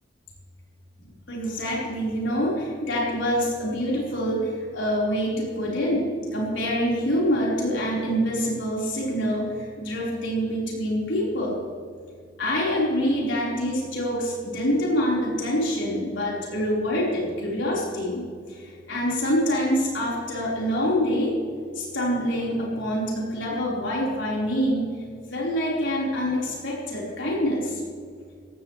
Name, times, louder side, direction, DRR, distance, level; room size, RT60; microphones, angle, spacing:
voice 1, 1.3-11.6 12.4-18.2 18.5-21.4 21.7-24.9 25.3-27.8, equal, 75° left, -4 dB, 4.5 m, -26 dB
17.0 x 15.5 x 3.3 m, 2.1 s
head